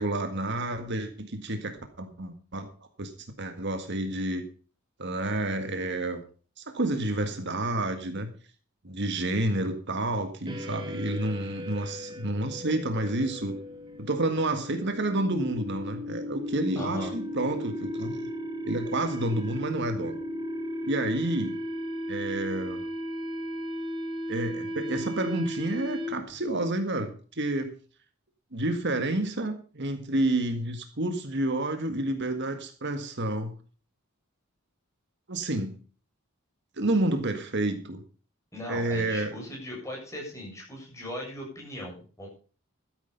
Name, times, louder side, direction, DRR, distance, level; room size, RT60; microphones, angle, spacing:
voice 1, 0.0-2.7 3.0-3.1 3.4-4.5 5.0-6.2 6.6-8.3 8.8-13.6 14.0-18.3 18.7-20.2 20.8-21.6 22.1-22.8 24.3-27.8 28.5-33.5 35.3-35.8 36.8-38.0 38.7-39.4, right 1 dB, 55° right, 7 dB, 1.7 m, -29 dB
sound 1, 10.5-26.4, equal, 20° right, 1.7 m, -36 dB
voice 2, 16.8-17.1 38.5-42.3, left 1 dB, 15° left, -3 dB, 7.6 m, -38 dB
13.0 x 10.5 x 5.4 m, 0.38 s
head